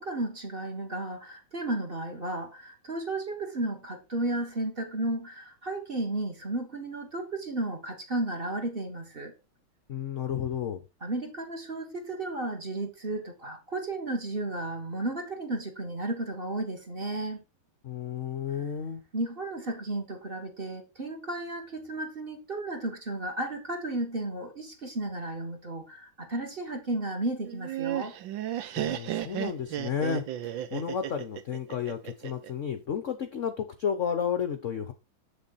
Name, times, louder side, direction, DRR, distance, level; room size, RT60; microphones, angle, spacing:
voice 1, 0.0-9.3 11.0-17.4 18.5-18.6 19.1-28.1, right 2 dB, 30° right, 1.6 m, -33 dB
voice 2, 9.9-10.8 17.8-19.0 28.8-34.9, left 7 dB, 55° left, 0.8 m, -32 dB
Laughter, 27.4-32.5, right 12 dB, 70° right, 1.4 m, -33 dB
7.6 x 6.9 x 4.1 m
omnidirectional pair, 2.2 m